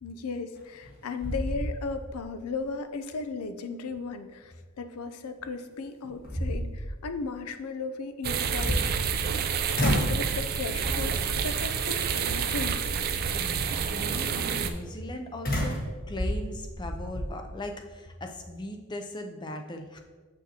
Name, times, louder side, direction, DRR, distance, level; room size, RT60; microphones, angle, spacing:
voice 1, 0.0-8.9 9.8-12.8, left 4 dB, 90° left, 9 dB, 0.5 m, -36 dB
sound 1, 0.6-0.9 1.2-2.2 2.6-2.7 5.4-5.5 6.0-7.0 8.3-9.4 9.7-10.3 10.8-11.2 12.0-12.4 15.4-17.3, equal, 40° left, 1.3 m, -30 dB
sound 2, 8.2-14.7, right 7 dB, 45° right, 0.3 m, -29 dB
voice 2, 13.4-15.8 16.1-20.0, left 1 dB, 20° left, 4 dB, 0.5 m, -38 dB
7.0 x 6.2 x 2.8 m, 1.4 s
head